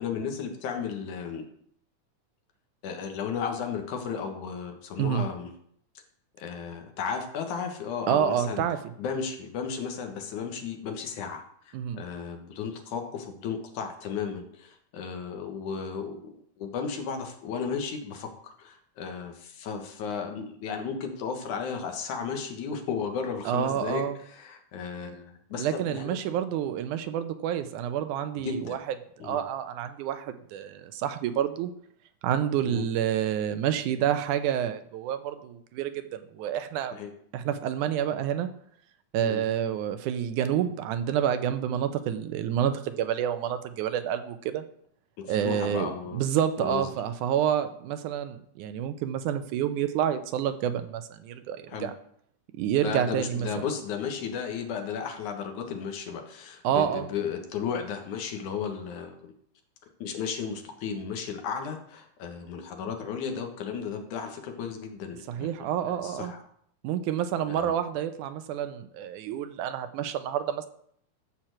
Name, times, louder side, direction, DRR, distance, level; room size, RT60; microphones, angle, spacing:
voice 1, 0.0-1.5 2.8-5.5 6.4-8.6 9.0-26.2 28.4-28.8 29.2-29.4 32.6-32.9 36.9-37.1 39.2-39.4 45.2-46.2 46.6-46.8 51.7-51.9 52.8-59.3 60.0-65.5 65.9-66.4 67.5-67.7, left 6 dB, 75° left, 4 dB, 2.8 m, -34 dB
voice 2, 8.1-8.8 11.7-12.0 23.5-24.2 25.6-28.8 29.2-31.7 32.2-37.0 37.3-38.5 39.1-44.6 45.3-51.9 52.5-53.5 56.6-57.1 65.3-66.3 66.8-70.7, right 10 dB, 80° right, 10 dB, 2.2 m, -28 dB
12.5 x 4.4 x 7.6 m, 0.66 s
omnidirectional pair, 3.6 m